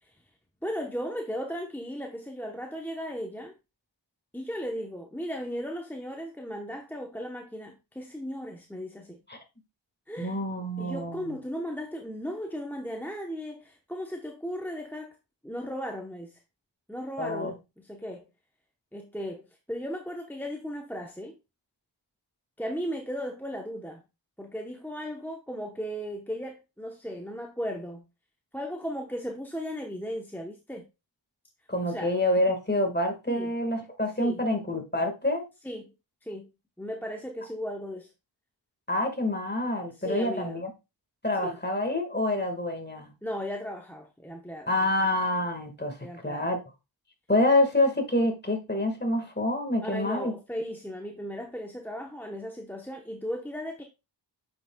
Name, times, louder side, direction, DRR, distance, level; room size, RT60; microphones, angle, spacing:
voice 1, 0.6-3.5 4.3-9.2 10.1-10.4 10.8-15.2 15.4-16.4 16.9-18.2 18.9-21.3 22.6-24.0 24.4-28.0 28.5-30.8 31.8-32.1 33.3-33.5 34.2-34.5 35.6-35.9 36.2-36.5 36.8-38.1 39.9-40.6 41.4-41.6 43.2-44.7 46.0-46.5 49.8-53.8, equal, 5° left, 1.0 m, -36 dB
voice 2, 10.2-11.4 17.2-17.5 31.7-35.5 38.9-40.7 41.2-43.1 44.7-46.0 46.2-46.6 47.3-50.3, left 1 dB, 20° left, 1.8 m, -27 dB
7.7 x 6.0 x 2.3 m
wide cardioid pair, 45°, 45 cm